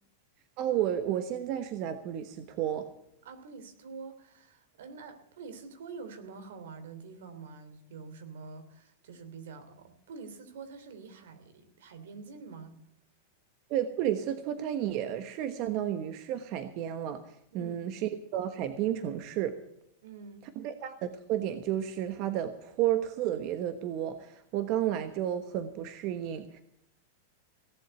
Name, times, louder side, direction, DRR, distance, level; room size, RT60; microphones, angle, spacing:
voice 1, 0.6-2.9 13.7-19.5 20.6-26.6, right 11 dB, 45° right, 9 dB, 1.2 m, -32 dB
voice 2, 3.2-12.7 17.5-17.8 20.0-20.5, right 4 dB, 80° right, 9 dB, 3.0 m, -46 dB
17.5 x 7.9 x 8.0 m, 0.73 s
supercardioid pair, 145°, 0 cm